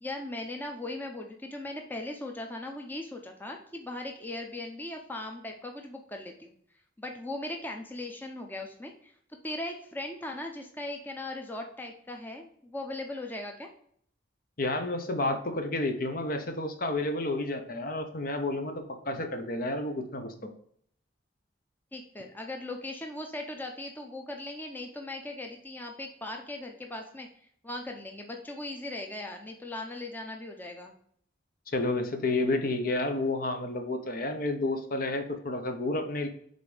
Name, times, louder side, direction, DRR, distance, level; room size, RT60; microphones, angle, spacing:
voice 1, 0.0-6.5 7.0-9.1 9.4-13.7 21.9-27.3 27.6-30.9, left 1 dB, 10° left, 2 dB, 0.7 m, -38 dB
voice 2, 14.6-20.5 31.7-36.3, left 2 dB, 50° left, 6 dB, 0.8 m, -30 dB
5.2 x 4.0 x 5.0 m, 0.63 s
head